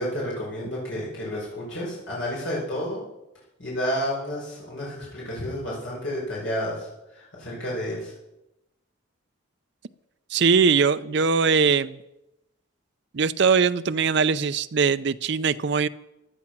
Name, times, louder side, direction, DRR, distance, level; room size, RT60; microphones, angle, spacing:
voice 1, 0.0-3.0 3.6-8.1, equal, 65° left, -5 dB, 5.3 m, -31 dB
voice 2, 10.3-12.0 13.1-15.9, right 5 dB, 55° right, 13 dB, 0.5 m, -21 dB
15.0 x 11.5 x 6.0 m, 0.93 s
head